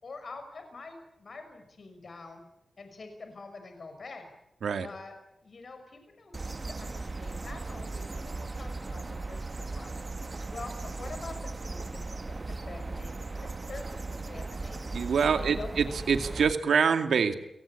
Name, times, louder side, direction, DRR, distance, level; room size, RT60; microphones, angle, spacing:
voice 1, 0.0-2.4 2.8-4.3 4.8-5.1 5.4-10.1 10.5-14.9 15.4-15.8, left 3 dB, 60° left, 6 dB, 6.0 m, -46 dB
sound 1, 6.3-16.5, right 3 dB, 40° right, 1.5 m, -37 dB
voice 2, 14.9-17.3, right 6 dB, 85° right, 8 dB, 2.3 m, -25 dB
29.5 x 18.5 x 8.6 m, 0.82 s
cardioid pair, 50°, 0 cm